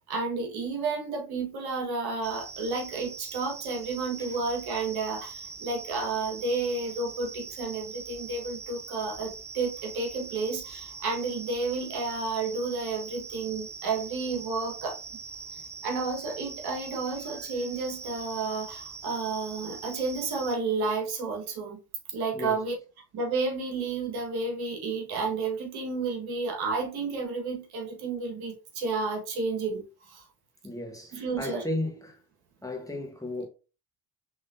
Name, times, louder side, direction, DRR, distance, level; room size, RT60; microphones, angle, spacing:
voice 1, 0.1-15.0 15.8-21.8 22.1-22.7 23.1-29.8 30.1-30.2 31.1-31.6, right 3 dB, 60° right, 1.6 m, -31 dB
sound 1, 2.2-20.6, right 5 dB, 15° right, 0.4 m, -42 dB
voice 2, 30.6-32.2 32.6-33.5, left 1 dB, 10° left, 1.3 m, -34 dB
5.7 x 3.4 x 2.7 m
hypercardioid pair, 60°, 42 cm